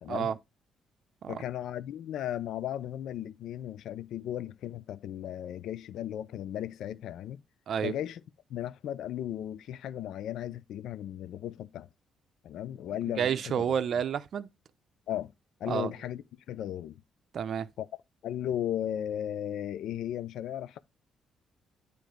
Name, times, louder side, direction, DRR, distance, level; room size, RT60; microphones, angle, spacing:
voice 1, 0.0-0.3 1.3-7.4 7.8-8.2 8.5-11.9 12.4-13.5 15.1-15.3 15.6-16.2 16.5-17.0 17.8-17.9 18.2-20.8, left 11 dB, 80° left, 0.5 m, -36 dB
voice 2, 13.2-14.5 15.7-15.9 17.3-17.7, right 8 dB, 60° right, 0.6 m, -30 dB
9.2 x 3.4 x 5.0 m
cardioid pair, 90°, 0 cm